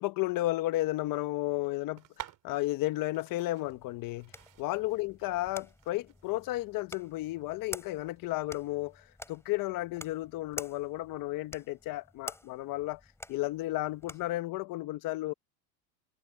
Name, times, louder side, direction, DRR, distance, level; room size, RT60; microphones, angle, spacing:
voice 1, 0.0-4.3 4.6-13.0 13.3-15.3, left 17 dB, 45° left, 1.3 m, -33 dB
sound 1, 1.9-9.6, right 13 dB, 40° right, 4.0 m, -53 dB
sound 2, 3.7-14.4, left 2 dB, 5° left, 4.9 m, -49 dB
supercardioid pair, 125°, 46 cm